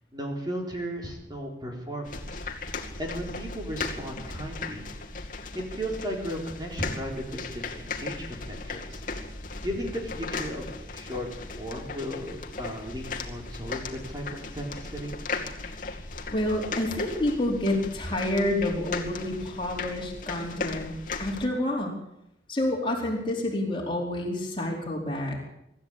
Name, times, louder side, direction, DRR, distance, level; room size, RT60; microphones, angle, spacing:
voice 1, 0.1-2.4 3.0-4.9 5.5-9.0 9.6-10.7 10.9-11.3 11.6-15.2, equal, 20° right, 0 dB, 4.1 m, -35 dB
sound 1, 2.0-21.5, left 3 dB, 45° left, 2.3 m, -37 dB
voice 2, 16.3-21.9 22.5-25.4, left 1 dB, 25° left, -1 dB, 4.6 m, -28 dB
24.5 x 13.5 x 8.9 m, 0.84 s
head